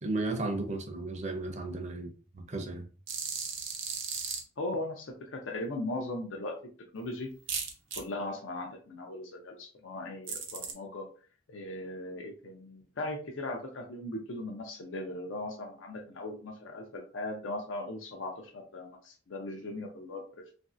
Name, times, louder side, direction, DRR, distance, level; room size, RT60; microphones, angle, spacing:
voice 1, 0.0-2.8, right 2 dB, 40° right, 0.5 m, -34 dB
sound 1, 3.1-4.4 7.5-8.0 10.3-10.7, right 6 dB, 75° right, 0.7 m, -35 dB
voice 2, 4.6-6.6 6.9-7.3 7.9-11.1 11.5-20.5, left 2 dB, 90° left, 0.5 m, -38 dB
3.0 x 2.5 x 2.5 m
head